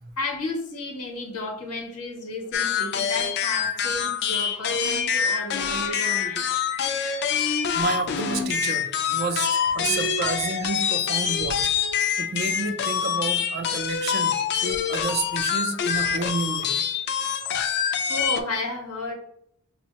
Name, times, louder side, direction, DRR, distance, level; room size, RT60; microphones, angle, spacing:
voice 1, 0.2-7.5 9.3-10.8 17.8-19.1, left 2 dB, 85° left, 1 dB, 0.9 m, -34 dB
sound 1, 2.5-18.4, left 7 dB, 50° left, 0.4 m, -25 dB
voice 2, 7.7-14.4 14.6-16.8, right 4 dB, 45° right, 8 dB, 0.4 m, -30 dB
6.0 x 2.1 x 2.8 m, 0.69 s
head